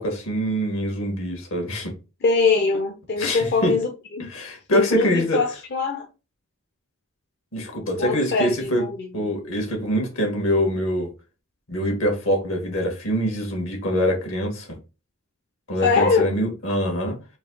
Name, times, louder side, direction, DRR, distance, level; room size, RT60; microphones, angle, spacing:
voice 1, 0.0-1.9 3.2-3.7 4.3-5.4 7.5-8.9 9.1-11.1 11.7-14.7 15.7-17.2, equal, 75° left, 1.6 m, -24 dB
voice 2, 2.2-3.9 4.1-4.3 4.7-6.1 8.0-9.1 15.8-16.3, left 4 dB, 50° left, 0.6 m, -22 dB
4.0 x 2.7 x 3.8 m
head